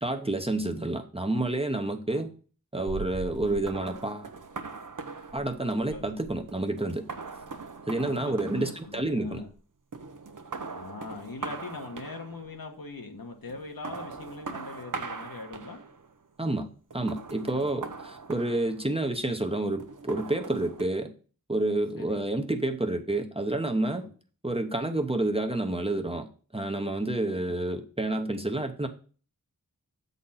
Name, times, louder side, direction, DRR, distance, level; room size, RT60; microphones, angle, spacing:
voice 1, 0.0-2.3 2.7-4.3 5.3-7.0 7.9-9.4 16.4-21.1 21.5-24.0 24.4-26.3 26.5-28.9, right 2 dB, 15° right, 5 dB, 0.9 m, -29 dB
sound 1, 2.9-9.6 9.9-12.6 13.5-16.1 16.9-19.1 19.8-20.9, right 4 dB, 60° right, 0.8 m, -41 dB
voice 2, 8.0-9.5 10.7-15.8 17.4-17.8 19.3-19.5 22.0-22.2 23.9-24.1 27.4-27.6, left 3 dB, 75° left, 3 dB, 1.4 m, -42 dB
7.5 x 4.1 x 5.6 m, 0.40 s
wide cardioid pair, 50°, 36 cm